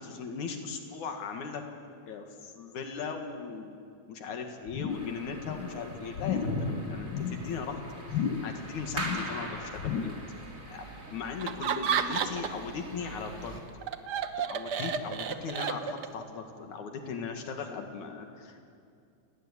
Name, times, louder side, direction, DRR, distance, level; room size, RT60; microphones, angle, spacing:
voice 1, 0.0-1.6 2.1-7.8 8.1-10.1 10.7-10.8 11.1-13.6 14.5-18.6, left 5 dB, 90° left, 4 dB, 3.4 m, -38 dB
sound 1, 4.7-5.2 5.4-5.8 6.1-6.6 7.0-7.5 8.0-8.6 8.9-9.4 9.8-10.3 10.7-10.8, left 8 dB, 65° left, 1.1 m, -34 dB
sound 2, 4.9-13.6, right 1 dB, 25° right, 3.6 m, -40 dB
Laughter, 11.4-12.7 13.0-16.2, right 7 dB, 70° right, 1.0 m, -31 dB
29.0 x 18.5 x 9.9 m, 2.4 s
omnidirectional pair, 3.3 m